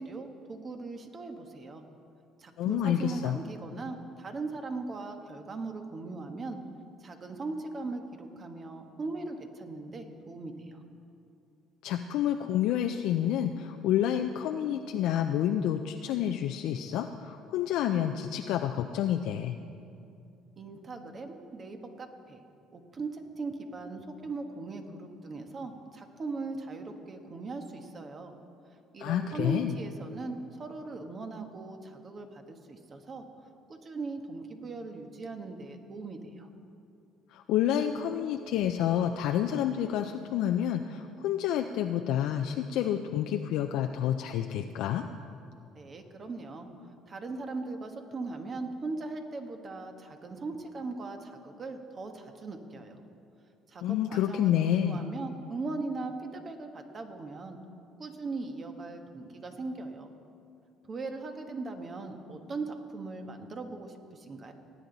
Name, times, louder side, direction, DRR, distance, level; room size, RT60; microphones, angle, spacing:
voice 1, 0.0-1.8 2.4-6.6 7.0-10.8 20.6-22.4 22.7-28.3 28.9-33.2 33.7-36.5 45.7-46.7 47.1-53.0 53.7-57.6 58.0-60.1 60.9-64.5, right 3 dB, 40° right, 5 dB, 1.3 m, -39 dB
voice 2, 2.6-3.4 11.8-19.6 29.0-29.7 37.3-45.0 53.8-55.0, left 10 dB, 75° left, 5 dB, 0.5 m, -29 dB
18.5 x 8.8 x 4.0 m, 2.5 s
supercardioid pair, 80°, 0 cm